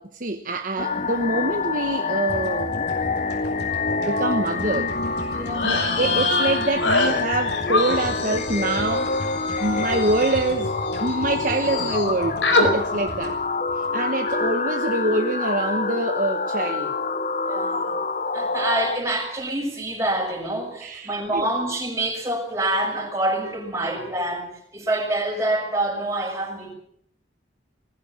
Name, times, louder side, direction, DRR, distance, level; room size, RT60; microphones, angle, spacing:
voice 1, 0.0-2.9 4.1-5.0 5.6-9.1 9.6-13.4 13.7-17.0 20.8-21.5, right 2 dB, 45° right, 1.2 m, -25 dB
sound 1, 0.8-19.0, left 3 dB, 40° left, 1.0 m, -27 dB
sound 2, 2.3-14.5, equal, 65° left, 5.7 m, -37 dB
voice 2, 5.3-5.8 17.4-18.0 18.3-26.7, right 1 dB, 15° right, 6.3 m, -26 dB
sound 3, 5.5-11.1 11.4-12.1 12.4-12.7, left 3 dB, 90° left, 4.5 m, -25 dB
20.0 x 15.5 x 8.6 m
head